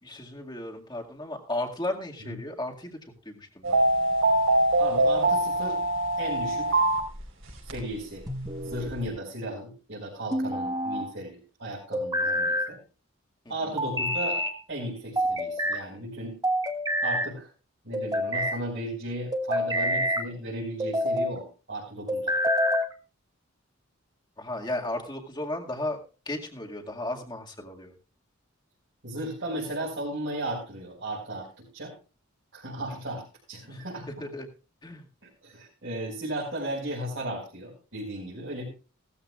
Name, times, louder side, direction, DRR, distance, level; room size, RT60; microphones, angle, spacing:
voice 1, 0.0-3.0 3.3-3.8 13.5-13.6 24.4-26.0 26.3-27.9 33.6-34.5 34.8-35.0, left 1 dB, 20° left, 2 dB, 2.0 m, -35 dB
sound 1, 3.6-7.8 8.2-8.3 8.6-9.0, right 1 dB, 80° right, 5.2 m, -23 dB
voice 2, 4.8-5.8 6.2-6.8 7.6-8.2 8.6-12.8 13.5-14.4 14.7-16.4 17.0-17.5 17.8-22.3 29.0-31.9 32.5-33.2 33.5-34.2 35.4-38.7, right 1 dB, 60° right, -6 dB, 5.0 m, -35 dB
sound 2, 8.3-8.9 10.3-11.1 11.9-12.7 13.8-14.6 15.2-15.8 16.4-17.3 17.9-18.6 19.3-20.3 20.8-21.3 22.1-22.9, equal, 20° right, 1.3 m, -27 dB
17.5 x 14.0 x 2.4 m, 0.34 s
head